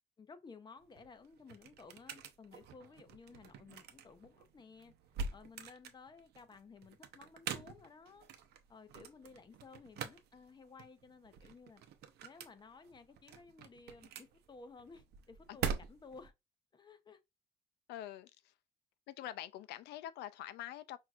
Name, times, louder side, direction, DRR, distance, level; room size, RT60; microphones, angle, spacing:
voice 1, 0.2-4.9 5.3-8.2 8.7-11.8 12.2-16.3 16.7-17.2, left 4 dB, 25° left, 0.7 m, -56 dB
sound 1, 0.8-16.3, right 6 dB, 75° right, 0.7 m, -45 dB
voice 2, 17.9-18.5 19.1-21.0, left 12 dB, 80° left, 0.5 m, -45 dB
5.9 x 2.7 x 2.4 m
cardioid pair, 110°, 17 cm